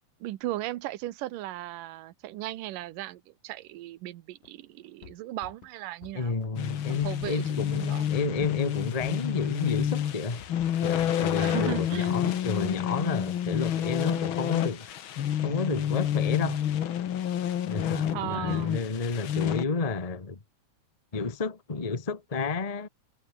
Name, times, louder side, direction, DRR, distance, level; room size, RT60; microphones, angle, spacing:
voice 1, 0.2-6.3 6.9-7.4 7.7-8.1 11.4-12.2 18.1-18.8, right 15 dB, 75° right, 2.6 m, -36 dB
sound 1, 4.4-4.5 4.8-5.7 6.0-6.5 6.8-11.6, left 10 dB, 70° left, 3.3 m, -51 dB
voice 2, 6.1-10.4 10.8-15.0 15.4-16.6 17.7-20.4 21.1-22.9, left 4 dB, 45° left, 0.4 m, -31 dB
sound 2, 6.6-19.7, left 10 dB, 85° left, 1.1 m, -29 dB
omnidirectional pair, 4.1 m